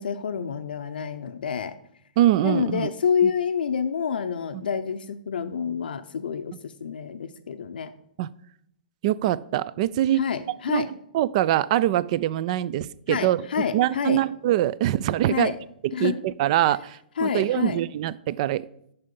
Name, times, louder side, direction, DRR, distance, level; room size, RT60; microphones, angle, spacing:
voice 1, 0.0-1.7 2.4-7.9 10.2-10.9 13.1-14.2 15.3-15.6 15.9-16.2 17.2-17.8, left 7 dB, 80° left, 8 dB, 0.6 m, -28 dB
voice 2, 2.2-2.9 3.2-3.3 4.5-4.6 8.2-8.3 9.0-10.2 10.7-10.9 11.1-15.5 16.0-18.7, right 13 dB, 45° right, 20 dB, 0.4 m, -24 dB
6.8 x 5.7 x 7.0 m, 0.73 s
hypercardioid pair, 135°, 5 cm